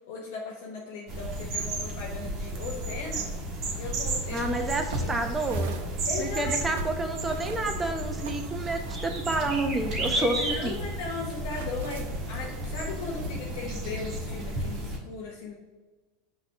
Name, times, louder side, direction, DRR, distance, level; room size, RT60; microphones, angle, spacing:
voice 1, 0.1-3.3 3.8-4.7 5.0-5.2 5.5-5.6 6.1-6.6 10.2-15.5, left 4 dB, 60° left, -2 dB, 0.9 m, -37 dB
sound 1, 1.1-15.0, right 1 dB, 40° right, 1.3 m, -33 dB
sound 2, 3.9-13.6, right 2 dB, 65° right, 0.7 m, -45 dB
voice 2, 4.3-5.7 6.2-10.8, right 2 dB, 15° right, 5 dB, 0.8 m, -30 dB
5.9 x 3.1 x 5.7 m, 1.3 s
figure-of-eight pair, 85°, 0 cm